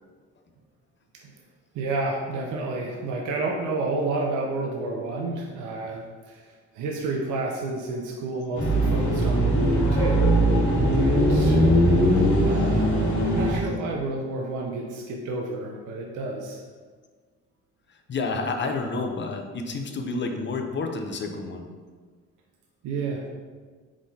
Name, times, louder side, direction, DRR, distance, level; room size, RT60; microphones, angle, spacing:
voice 1, 1.7-10.3 11.0-11.6 12.4-16.6 22.8-23.2, right 3 dB, 80° right, 0 dB, 0.6 m, -30 dB
sound 1, 8.5-13.6, equal, 70° left, 1.3 m, -20 dB
voice 2, 17.9-21.7, left 3 dB, 40° left, 4 dB, 0.6 m, -30 dB
4.8 x 3.8 x 2.7 m, 1.5 s
cardioid pair, 90°, 30 cm